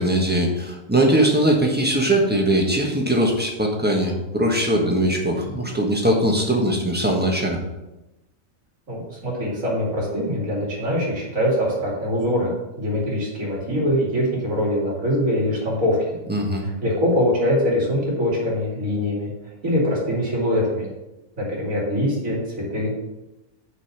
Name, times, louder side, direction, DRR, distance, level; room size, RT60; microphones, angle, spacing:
voice 1, 0.0-7.6 16.3-16.6, right 1 dB, 10° right, -1 dB, 1.3 m, -20 dB
voice 2, 8.9-12.5 12.8-16.2 16.6-19.3 19.6-20.9 21.4-22.9, equal, 80° right, -3 dB, 3.0 m, -23 dB
6.2 x 5.4 x 6.7 m, 0.99 s
omnidirectional pair, 1.4 m